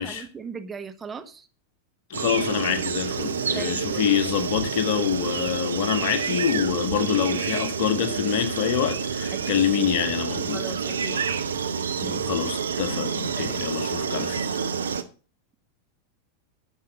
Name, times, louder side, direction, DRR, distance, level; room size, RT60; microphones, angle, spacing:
voice 1, 0.0-1.5 3.5-4.1 9.3-9.7 10.5-11.2 12.0-12.2 12.7-12.8 13.4-13.6, right 5 dB, 15° right, 1.1 m, -38 dB
voice 2, 2.1-10.6 12.0-14.5, left 9 dB, 50° left, 1.6 m, -26 dB
sound 1, 2.1-15.0, right 6 dB, 70° right, 0.9 m, -28 dB
12.0 x 5.8 x 6.7 m
figure-of-eight pair, 90°, 0 cm